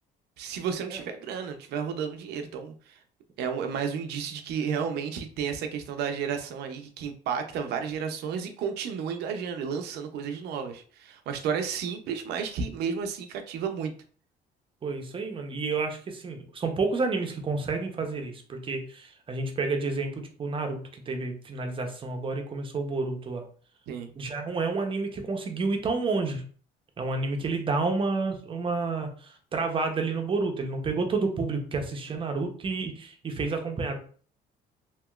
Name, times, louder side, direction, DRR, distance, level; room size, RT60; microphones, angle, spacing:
voice 1, 0.4-3.0 3.4-13.9 23.9-24.1, right 6 dB, 75° right, 6 dB, 0.5 m, -32 dB
voice 2, 14.8-23.4 24.2-26.4 27.0-34.0, right 3 dB, 30° right, 4 dB, 0.6 m, -30 dB
2.9 x 2.8 x 2.3 m, 0.43 s
cardioid pair, 110°, 17 cm